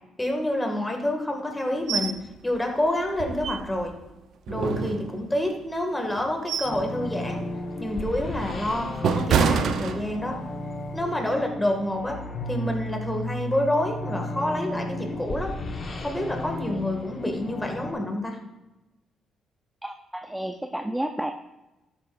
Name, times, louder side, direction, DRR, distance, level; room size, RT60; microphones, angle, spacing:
voice 1, 0.2-2.2 2.4-3.9 4.5-7.4 7.8-10.4 10.9-12.2 12.5-15.5 16.0-18.4, left 1 dB, 10° left, 2 dB, 2.1 m, -28 dB
sound 1, 1.9-2.2 2.6-2.7 3.1-4.0 4.5-5.5 6.1-6.9 7.3-7.5 8.1-10.5 10.9-11.1, right 6 dB, 70° right, 0.8 m, -27 dB
sound 2, 6.6-17.9, left 1 dB, 40° left, 1.7 m, -34 dB
voice 2, 19.8-21.3, right 1 dB, 5° right, 7 dB, 0.6 m, -31 dB
12.5 x 8.8 x 2.6 m, 0.99 s
cardioid pair, 90°, 0 cm